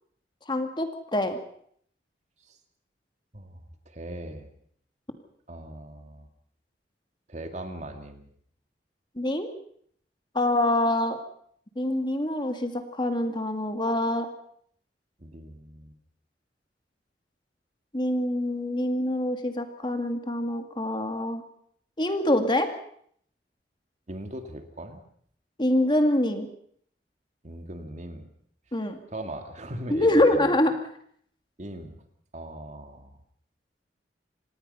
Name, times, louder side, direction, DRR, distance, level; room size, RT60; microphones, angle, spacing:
voice 1, 0.5-1.4 9.2-9.5 10.3-11.2 11.8-14.3 17.9-21.4 22.0-22.7 25.6-26.5 28.7-29.0 29.9-30.7, left 1 dB, 25° left, 6 dB, 2.0 m, -25 dB
voice 2, 3.9-4.5 5.5-6.3 7.3-8.3 15.2-15.9 24.1-25.0 27.4-28.3 29.1-30.6 31.6-32.0 32.3-33.2, right 1 dB, 40° right, 6 dB, 2.3 m, -39 dB
26.5 x 19.0 x 5.6 m, 0.64 s
head